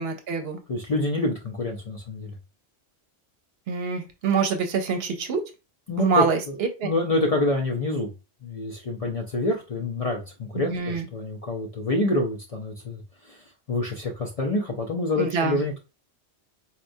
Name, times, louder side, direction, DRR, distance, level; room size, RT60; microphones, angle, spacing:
voice 1, 0.0-0.6 3.7-5.4 6.0-6.9 10.6-11.1 15.2-15.6, right 5 dB, 70° right, 6 dB, 0.8 m, -25 dB
voice 2, 0.7-2.4 5.9-6.6 6.8-8.1 8.4-13.4 13.7-15.8, left 2 dB, 45° left, 0 dB, 0.5 m, -27 dB
4.1 x 2.1 x 2.6 m, 0.28 s
omnidirectional pair, 1.1 m